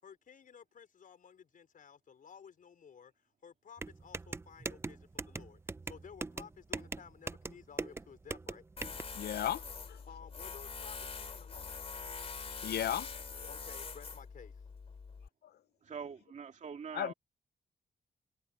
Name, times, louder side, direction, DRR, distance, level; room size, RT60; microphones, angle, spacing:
voice 1, 0.0-3.1 3.4-5.6 5.9-8.6 10.1-11.7 13.5-14.5, left 7 dB, 55° left, 4.9 m, -54 dB
sound 1, 3.8-9.0, right 3 dB, 15° right, 0.4 m, -41 dB
Tools, 8.8-15.3, left 5 dB, 35° left, 2.8 m, -44 dB
voice 2, 9.1-10.0 12.6-13.5 16.9-17.1, left 11 dB, 75° left, 0.7 m, -36 dB
voice 3, 15.8-17.1, right 6 dB, 45° right, 2.4 m, -43 dB
wide cardioid pair, 160°, 17 cm